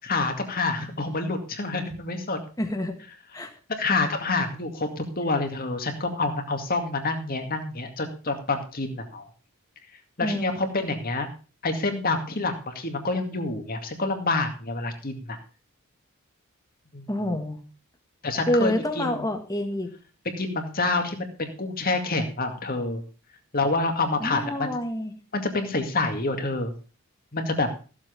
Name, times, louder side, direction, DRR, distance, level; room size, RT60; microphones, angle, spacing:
voice 1, 0.1-2.4 3.7-9.3 10.2-11.3 11.6-15.4 16.9-17.1 18.2-19.1 20.4-23.0 23.5-24.8 25.3-26.7 27.3-27.7, left 3 dB, 45° left, 5 dB, 2.2 m, -27 dB
voice 2, 2.6-3.0 3.3-3.5 10.2-10.6 17.1-17.6 18.5-19.9 24.2-25.1, left 1 dB, 15° left, 4 dB, 1.8 m, -27 dB
15.0 x 7.6 x 5.2 m, 0.36 s
head